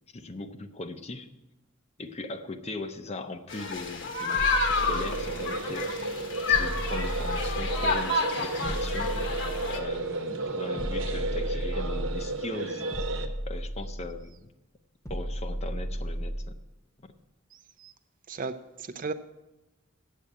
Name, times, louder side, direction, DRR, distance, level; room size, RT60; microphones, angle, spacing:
voice 1, 0.1-1.3 2.0-6.2 6.5-9.1 9.7-12.8 13.5-14.5 15.1-16.5, left 2 dB, 30° left, 8 dB, 0.7 m, -39 dB
sound 1, 3.5-9.8, left 3 dB, 60° left, 1.3 m, -29 dB
sound 2, 4.3-5.7 6.5-8.1 8.6-10.0 10.8-12.4 12.9-14.3 15.0-16.7, equal, 15° left, 1.0 m, -34 dB
sound 3, 4.8-13.3, right 2 dB, 65° right, 1.1 m, -33 dB
voice 2, 17.5-17.9 18.3-19.1, right 4 dB, 40° right, 11 dB, 0.5 m, -36 dB
8.4 x 7.6 x 8.7 m, 1.0 s
head